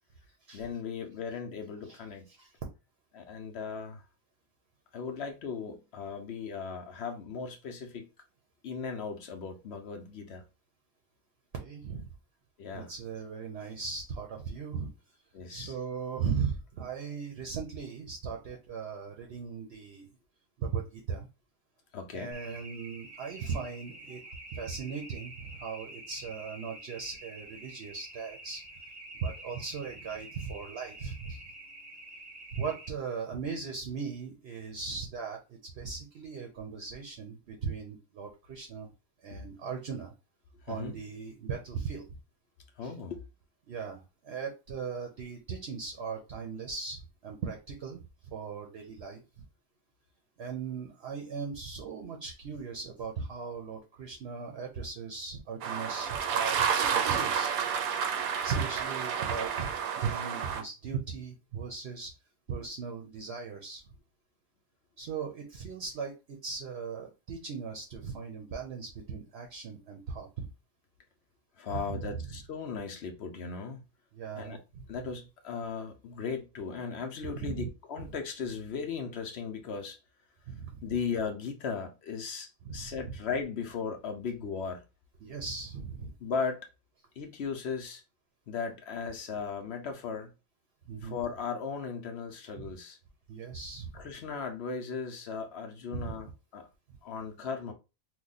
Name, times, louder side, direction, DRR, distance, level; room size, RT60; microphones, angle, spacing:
voice 1, 0.5-2.3 3.1-4.0 4.9-8.1 8.6-10.4 12.6-12.9 15.3-15.7 21.9-22.3 39.3-39.4 40.7-40.9 42.8-43.2 71.6-73.8 74.4-74.6 74.9-80.0 80.8-84.8 86.2-86.7 87.2-88.0 88.5-90.3 91.0-93.0 93.9-96.7 97.0-97.7, left 5 dB, 60° left, 0.8 m, -37 dB
voice 2, 11.6-12.1 12.7-14.9 15.5-20.1 20.6-21.3 22.1-24.2 24.5-28.6 29.2-31.5 32.5-38.9 39.2-40.1 40.6-42.1 42.8-42.9 43.7-49.4 50.4-57.5 58.4-62.1 62.5-63.8 65.0-70.5 71.7-72.2 74.1-74.8 77.4-77.7 78.0-78.1 80.5-81.0 82.6-83.1 85.2-86.1 90.9-91.2 92.6-92.7 93.3-94.0 95.9-96.1, right 5 dB, 55° right, 0.8 m, -38 dB
sound 1, 22.3-32.9, right 2 dB, 30° right, 0.8 m, -48 dB
sound 2, 55.6-60.6, right 7 dB, 80° right, 1.0 m, -30 dB
3.0 x 2.2 x 3.9 m
omnidirectional pair, 1.5 m